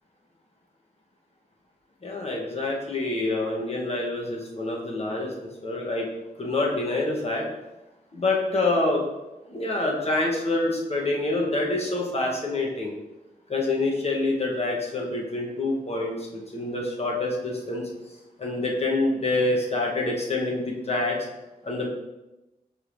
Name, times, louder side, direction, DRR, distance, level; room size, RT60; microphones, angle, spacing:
voice 1, 2.0-6.1 6.4-7.5 8.1-9.0 9.4-12.9 13.5-17.8 18.4-21.2 21.6-21.9, left 2 dB, 40° left, -2 dB, 1.1 m, -26 dB
5.3 x 3.3 x 2.6 m, 1.0 s
cardioid pair, 65°, 15 cm